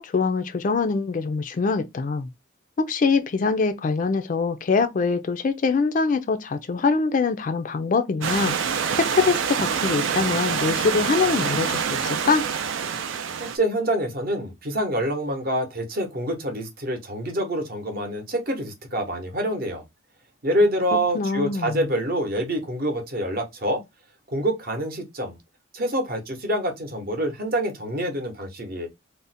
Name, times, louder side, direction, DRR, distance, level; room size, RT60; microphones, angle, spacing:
voice 1, 0.0-2.3 2.8-8.5 9.0-12.5 21.1-21.9, left 4 dB, 40° left, 0.3 m, -23 dB
Stream / Liquid, 8.2-13.6, right 7 dB, 75° right, 0.4 m, -26 dB
voice 2, 13.4-19.8 20.4-23.8 24.3-25.4 25.7-28.9, right 1 dB, 50° right, 0.8 m, -26 dB
2.5 x 2.1 x 3.9 m
head